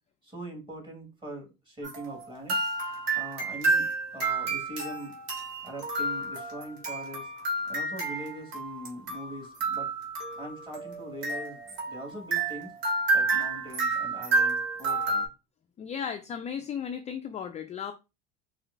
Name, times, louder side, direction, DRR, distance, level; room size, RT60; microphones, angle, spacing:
voice 1, 0.2-2.6 3.1-5.1 5.6-7.3 7.7-9.9 10.4-12.7 13.1-15.3, right 1 dB, 15° right, 1.7 m, -42 dB
sound 1, 1.8-15.3, right 3 dB, 80° right, 1.7 m, -30 dB
voice 2, 15.8-17.9, left 7 dB, 25° left, 0.3 m, -35 dB
4.2 x 2.7 x 2.5 m
supercardioid pair, 100°, 30 cm